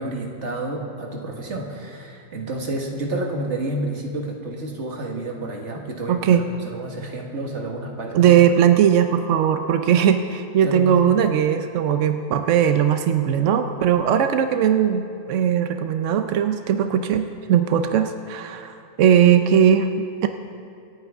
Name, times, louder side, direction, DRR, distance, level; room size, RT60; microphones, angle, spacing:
voice 1, 0.0-8.3 10.6-11.2, right 2 dB, 40° right, 1 dB, 1.7 m, -30 dB
voice 2, 6.1-6.5 8.1-20.3, right 9 dB, 75° right, 7 dB, 0.7 m, -19 dB
27.0 x 9.1 x 3.6 m, 2.6 s
omnidirectional pair, 2.0 m